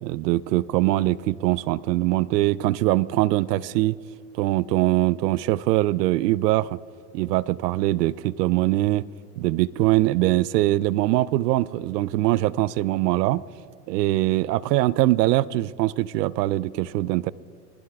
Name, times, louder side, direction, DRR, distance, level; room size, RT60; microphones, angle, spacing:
voice 1, 0.0-4.0 4.3-6.8 7.1-9.0 9.4-13.4 13.9-17.3, right 17 dB, 75° right, 21 dB, 0.5 m, -22 dB
27.0 x 20.5 x 2.4 m, 2.2 s
supercardioid pair, 165°, 49 cm